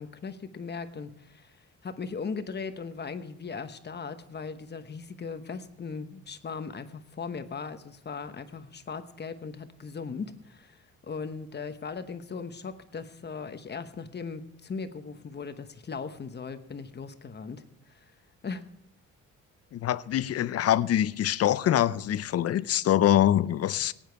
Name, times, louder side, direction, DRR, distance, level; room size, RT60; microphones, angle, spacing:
voice 1, 0.0-18.1 18.4-18.7, left 5 dB, 35° left, 1.1 m, -38 dB
voice 2, 19.7-23.9, left 12 dB, 55° left, 0.6 m, -24 dB
17.5 x 9.1 x 4.6 m
cardioid pair, 90°, 30 cm